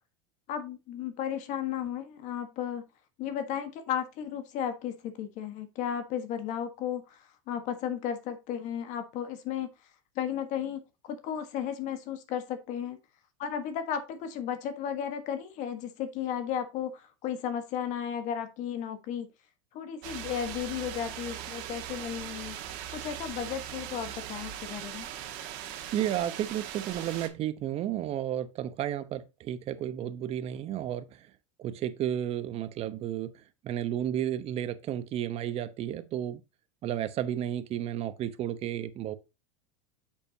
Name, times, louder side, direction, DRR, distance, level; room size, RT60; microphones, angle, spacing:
voice 1, 0.5-2.8 3.2-9.7 10.1-13.0 13.4-19.3 19.7-22.6 22.9-25.1, left 9 dB, 50° left, 1.5 m, -34 dB
sound 1, 20.0-27.3, right 11 dB, 60° right, 1.7 m, -40 dB
voice 2, 25.9-31.3 31.6-36.4 36.8-39.2, right 11 dB, 40° right, 1.0 m, -32 dB
8.1 x 6.8 x 2.8 m
supercardioid pair, 110°, 16 cm